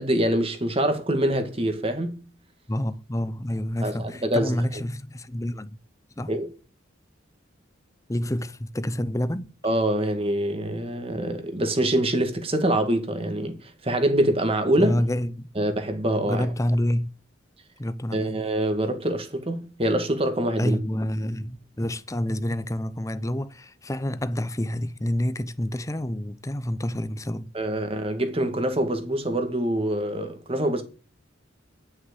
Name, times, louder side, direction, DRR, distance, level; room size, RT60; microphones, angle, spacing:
voice 1, 0.0-2.2 3.8-4.8 6.3-6.5 9.6-14.9 15.6-16.5 18.1-20.8 27.5-30.8, right 1 dB, 30° right, 1.9 m, -25 dB
voice 2, 2.7-5.8 6.2-6.3 8.1-9.5 14.8-15.5 16.2-17.1 17.8-18.4 20.6-27.5, left 1 dB, 15° left, 0.7 m, -28 dB
10.5 x 6.3 x 8.0 m
head